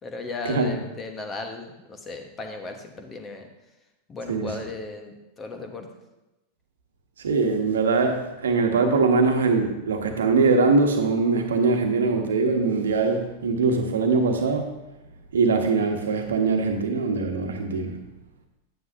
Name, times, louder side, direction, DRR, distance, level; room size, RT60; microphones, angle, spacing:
voice 1, 0.0-3.5 4.1-5.9, left 3 dB, 20° left, 4 dB, 1.3 m, -36 dB
voice 2, 7.2-14.7 15.3-18.0, right 4 dB, 65° right, 4 dB, 1.2 m, -22 dB
9.9 x 9.5 x 2.7 m, 0.98 s
figure-of-eight pair, 90°, 0 cm